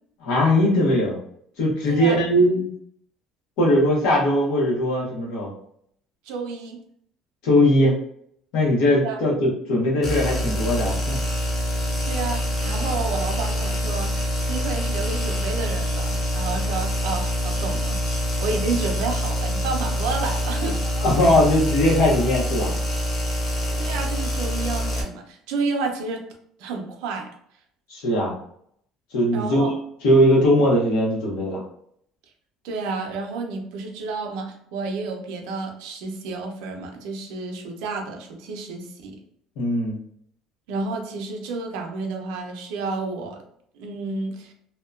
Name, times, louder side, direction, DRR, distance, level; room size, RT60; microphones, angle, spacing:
voice 1, 0.2-1.2 1.6-2.7 3.6-5.5 7.4-8.0 8.5-11.2 21.0-22.7 27.9-28.3 29.1-29.8 30.0-31.6 39.6-40.0, left 1 dB, 75° left, -3 dB, 1.0 m, -20 dB
voice 2, 1.9-2.2 6.2-6.8 9.0-9.2 12.1-14.1 14.4-18.0 18.4-20.8 23.3-23.4 23.8-26.2 26.6-27.3 29.3-29.7 32.6-39.2 40.7-43.4 43.7-44.5, right 4 dB, 85° right, 2 dB, 0.5 m, -30 dB
sound 1, 10.0-25.0, equal, 25° left, 0.5 m, -25 dB
2.7 x 2.2 x 2.4 m, 0.68 s
cardioid pair, 175°, 0 cm